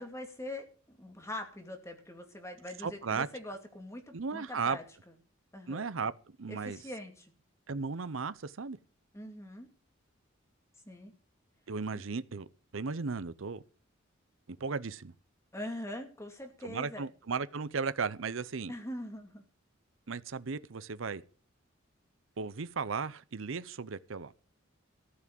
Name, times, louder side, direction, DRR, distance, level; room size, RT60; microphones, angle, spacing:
voice 1, 0.0-4.8 5.5-5.9 6.5-7.3 9.1-9.7 10.9-11.1 15.5-17.0 18.7-19.4, left 1 dB, 15° left, 2.4 m, -43 dB
voice 2, 2.8-3.3 4.1-4.8 5.7-6.8 7.7-8.8 11.7-12.5 12.7-13.6 14.5-15.1 16.6-18.7 20.1-21.2 22.4-24.3, right 5 dB, 75° right, 0.7 m, -35 dB
14.5 x 6.0 x 9.2 m
head